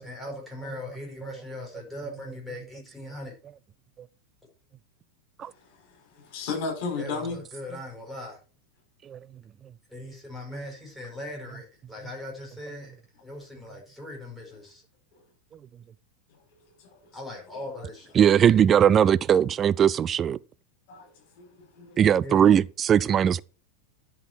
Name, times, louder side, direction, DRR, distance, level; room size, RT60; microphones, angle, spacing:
voice 1, 0.0-3.3 7.0-8.4 9.9-12.9 13.2-14.8 17.1-18.1 22.2-22.4, left 1 dB, ahead, 4.8 m, -39 dB
voice 2, 6.1-7.4 16.8-17.0 20.9-21.1 21.4-22.0, left 4 dB, 45° left, 5.5 m, -33 dB
voice 3, 18.2-20.4 22.0-23.4, right 9 dB, 25° right, 0.4 m, -20 dB
11.0 x 6.2 x 4.4 m
figure-of-eight pair, 90°, 0 cm